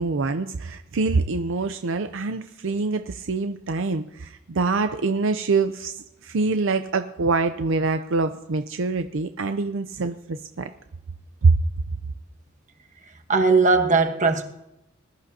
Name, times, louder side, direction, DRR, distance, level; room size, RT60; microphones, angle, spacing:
voice 1, 0.0-10.7 11.4-11.6, right 3 dB, 65° right, 0.6 m, -25 dB
voice 2, 13.3-14.4, right 4 dB, 40° right, 1.3 m, -18 dB
20.5 x 13.0 x 2.8 m
head